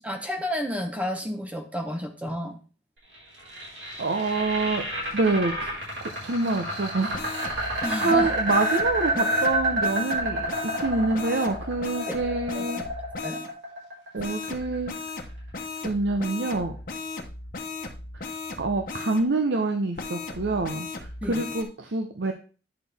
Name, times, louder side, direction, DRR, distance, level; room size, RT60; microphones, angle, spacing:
voice 1, 0.0-2.5 7.8-8.3 12.1-12.2 12.5-12.9 13.2-13.4 21.2-21.4, equal, 10° right, 4 dB, 0.9 m, -31 dB
sound 1, 3.1-15.2, right 1 dB, 90° right, 4.7 m, -29 dB
voice 2, 4.0-4.8 5.1-5.5 6.0-7.6 8.0-12.8 14.1-14.9 15.8-16.8 18.6-22.3, right 3 dB, 75° right, 6 dB, 0.7 m, -26 dB
sound 2, 7.1-13.5 14.2-19.2 19.9-21.6, left 3 dB, 50° left, 1.0 m, -37 dB
9.8 x 6.3 x 3.4 m, 0.36 s
head